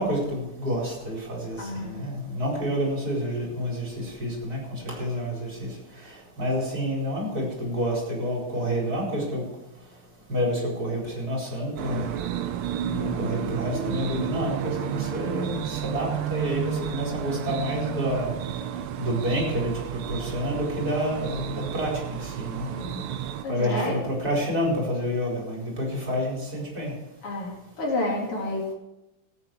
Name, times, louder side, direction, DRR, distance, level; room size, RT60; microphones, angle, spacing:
voice 1, 0.0-5.7 6.4-9.4 10.3-12.1 12.9-18.3 19.0-22.7 23.5-26.9, equal, 40° right, -2 dB, 5.0 m, -28 dB
voice 2, 1.6-2.0 12.8-13.2 22.7-23.1 23.4-24.0 27.2-28.7, left 2 dB, 85° left, -2 dB, 4.1 m, -30 dB
sound 1, 11.8-23.4, right 9 dB, 85° right, 1.7 m, -32 dB
17.5 x 8.9 x 4.6 m, 0.95 s
omnidirectional pair, 2.4 m